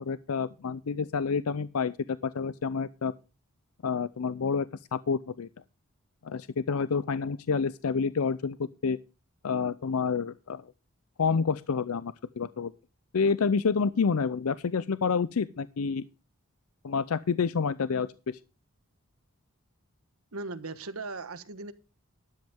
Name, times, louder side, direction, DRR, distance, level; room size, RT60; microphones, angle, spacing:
voice 1, 0.0-3.1 3.8-4.7 4.9-5.5 6.2-8.6 8.8-9.0 9.4-10.6 11.2-12.7 13.1-16.1 16.8-18.4, left 5 dB, 85° left, 0.5 m, -28 dB
voice 2, 20.3-21.7, right 3 dB, 85° right, 1.3 m, -38 dB
13.0 x 10.5 x 3.6 m
head